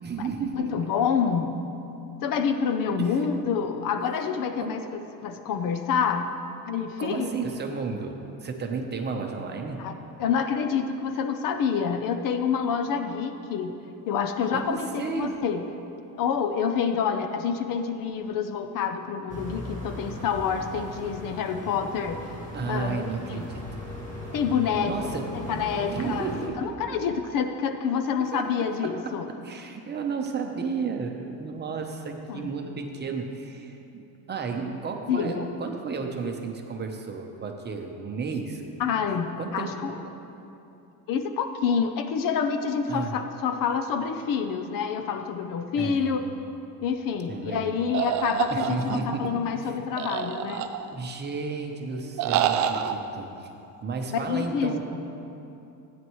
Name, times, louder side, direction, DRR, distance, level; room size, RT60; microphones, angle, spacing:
voice 1, 0.0-0.9 3.0-3.2 4.6-4.8 7.0-9.8 14.5-15.4 22.5-23.8 24.8-25.3 25.9-26.7 28.2-28.5 28.8-29.1 29.4-38.6 39.4-39.7 42.9-43.1 45.8-46.1 47.3-47.8 48.5-49.3 49.6-49.8 50.9-53.5 53.8-54.8, right 5 dB, 25° right, 3 dB, 0.9 m, -33 dB
voice 2, 0.5-1.6 2.2-6.3 6.7-7.3 9.8-9.9 10.2-13.7 14.1-15.6 16.1-22.3 22.7-23.5 24.3-24.9 25.3-26.3 26.6-29.3 32.3-32.5 35.1-35.5 38.8-39.9 41.1-46.2 46.8-50.7 54.1-54.7, left 6 dB, 50° left, 7 dB, 0.7 m, -27 dB
sound 1, 19.3-26.5, equal, 20° left, 1.7 m, -38 dB
sound 2, 47.9-49.3 50.0-51.1 52.2-52.9, right 9 dB, 45° right, 0.5 m, -27 dB
16.0 x 9.4 x 3.1 m, 2.8 s
cardioid pair, 145°, 42 cm